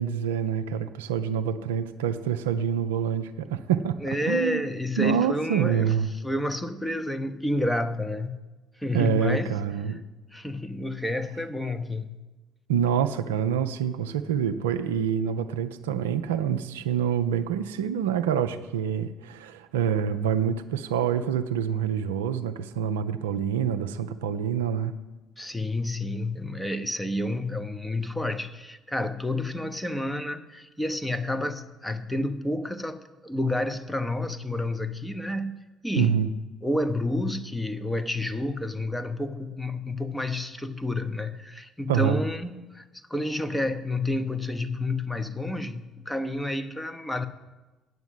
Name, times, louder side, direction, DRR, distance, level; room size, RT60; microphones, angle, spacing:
voice 1, 0.0-4.0 4.3-4.6 5.0-6.1 8.9-10.0 12.7-24.9 36.0-36.3 41.9-42.2, right 8 dB, 75° right, 0.4 m, -26 dB
voice 2, 4.0-5.9 6.2-8.4 8.8-9.6 10.3-12.2 25.4-36.3 36.6-47.3, left 1 dB, 5° left, 0.8 m, -30 dB
9.4 x 8.0 x 7.6 m
figure-of-eight pair, 50°, 0 cm